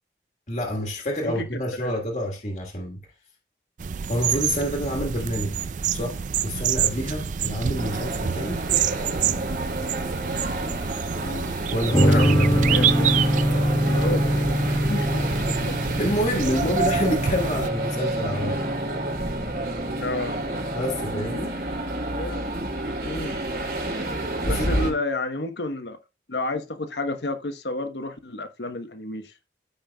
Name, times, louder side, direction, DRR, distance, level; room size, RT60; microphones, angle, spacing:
voice 1, 0.5-3.0 4.1-5.6 5.9-8.6 11.7-12.5 15.7-18.6 20.7-21.5 24.4-24.9, equal, 40° left, 1.5 m, -28 dB
sound 1, 3.8-17.7, right 8 dB, 45° right, 0.3 m, -28 dB
sound 2, 7.7-24.9, right 1 dB, 75° right, 4.0 m, -29 dB
voice 2, 11.2-11.5 12.1-13.1 13.9-15.9 20.0-20.4 22.1-22.4 23.0-23.4 24.5-26.0 26.3-29.3, left 2 dB, 80° left, 1.1 m, -31 dB
sound 3, 11.9-20.9, equal, 25° left, 1.3 m, -25 dB
14.5 x 5.3 x 2.3 m
head